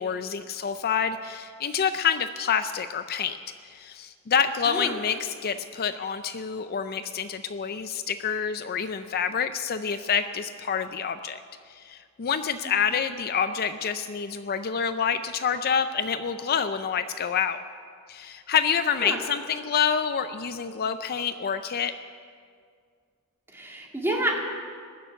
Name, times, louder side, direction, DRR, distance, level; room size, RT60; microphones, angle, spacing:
voice 1, 0.0-3.4 3.6-11.4 11.7-17.6 18.1-21.9, left 7 dB, 45° left, 10 dB, 0.5 m, -27 dB
voice 2, 23.5-24.4, right 1 dB, 10° right, -1 dB, 2.2 m, -29 dB
21.0 x 7.0 x 9.2 m, 2.1 s
head